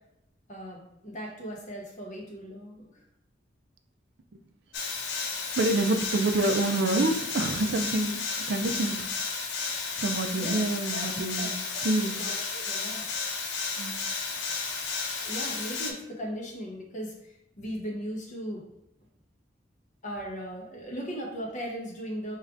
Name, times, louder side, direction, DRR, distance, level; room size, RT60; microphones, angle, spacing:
voice 1, 0.5-2.9 10.4-10.6 10.9-11.1 11.4-11.5 11.9-13.0 15.2-18.6 20.0-22.4, equal, 40° left, -2 dB, 0.9 m, -38 dB
sound 1, 4.7-15.9, left 4 dB, 70° left, 0.6 m, -32 dB
voice 2, 5.6-8.2 8.5-9.0 10.0-11.5 11.8-12.2 13.8-14.0, right 2 dB, 65° right, 6 dB, 0.4 m, -27 dB
4.7 x 3.2 x 2.5 m, 0.84 s
head